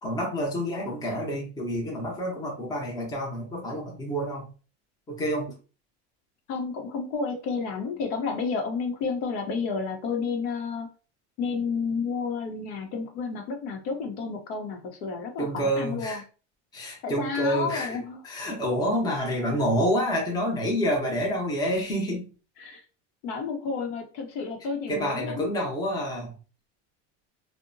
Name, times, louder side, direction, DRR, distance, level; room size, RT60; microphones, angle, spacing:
voice 1, 0.0-4.5 5.1-5.5 15.4-16.2 16.7-18.0 18.2-22.3 24.9-26.3, equal, 10° left, -1 dB, 0.7 m, -28 dB
voice 2, 6.5-10.9 11.4-16.2 17.0-18.2 22.6-22.8 23.2-25.5, left 5 dB, 70° left, 3 dB, 0.8 m, -31 dB
2.7 x 2.1 x 2.6 m, 0.35 s
supercardioid pair, 145°, 35 cm